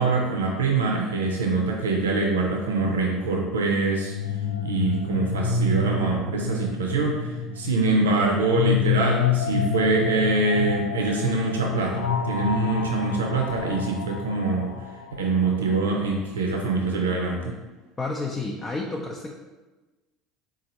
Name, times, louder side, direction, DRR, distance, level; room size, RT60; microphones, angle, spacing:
voice 1, 0.0-4.1 4.6-14.7 15.2-17.6, right 3 dB, 85° right, 0 dB, 0.5 m, -24 dB
sound 1, 3.9-15.8, left 6 dB, 85° left, 0.4 m, -28 dB
voice 2, 18.0-19.3, left 3 dB, 25° left, -1 dB, 0.5 m, -30 dB
4.1 x 2.5 x 4.1 m, 1.2 s
hypercardioid pair, 70°, 0 cm